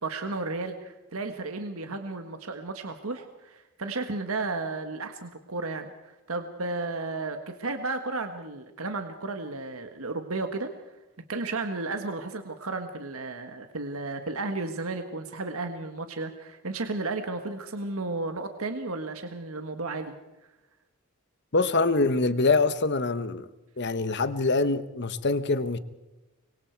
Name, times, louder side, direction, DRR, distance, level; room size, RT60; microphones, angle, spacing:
voice 1, 0.0-10.7 11.3-20.1, right 3 dB, 75° right, 1.5 m, -33 dB
voice 2, 21.5-23.5 23.8-25.8, left 3 dB, 50° left, 1.2 m, -24 dB
25.5 x 22.5 x 4.6 m
head